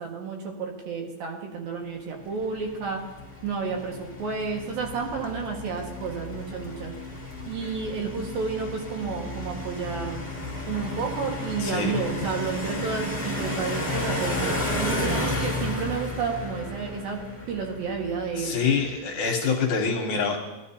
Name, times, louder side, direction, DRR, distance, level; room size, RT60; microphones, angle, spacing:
voice 1, 0.0-3.0 3.4-6.9 7.5-10.3 10.7-18.6, right 5 dB, 80° right, 1 dB, 3.3 m, -31 dB
sound 1, 2.4-18.6, left 1 dB, 10° left, 0.7 m, -33 dB
voice 2, 11.6-11.9 18.4-20.4, left 5 dB, 70° left, 2 dB, 2.1 m, -25 dB
18.5 x 11.5 x 2.7 m, 1.1 s
omnidirectional pair, 4.2 m